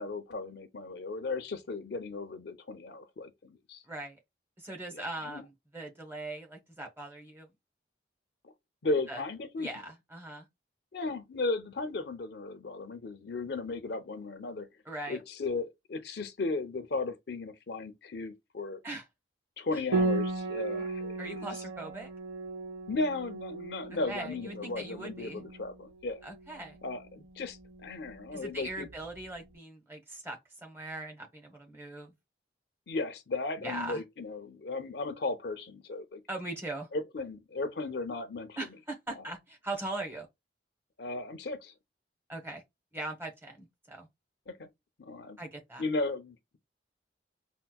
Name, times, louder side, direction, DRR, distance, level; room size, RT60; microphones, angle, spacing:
voice 1, 0.0-3.8 4.9-5.4 8.4-8.5 8.8-9.7 10.9-14.7 15.1-18.8 19.6-21.5 22.9-26.2 26.8-28.9 32.9-36.2 36.9-38.6 39.1-39.2 41.0-41.7 44.5-44.7 45.0-45.4 45.8-46.6, left 3 dB, 65° left, 0.5 m, -36 dB
voice 2, 3.9-4.2 4.6-7.5 9.1-9.2 9.6-10.5 14.9-15.2 18.8-19.0 21.2-22.1 24.1-25.4 26.2-26.8 28.3-32.1 33.6-34.0 36.3-36.9 38.6-40.3 42.3-42.6 42.9-44.1 45.4-45.8, right 2 dB, 15° right, 0.8 m, -40 dB
Piano, 19.9-29.2, right 2 dB, 70° right, 0.8 m, -37 dB
4.4 x 2.1 x 2.2 m
head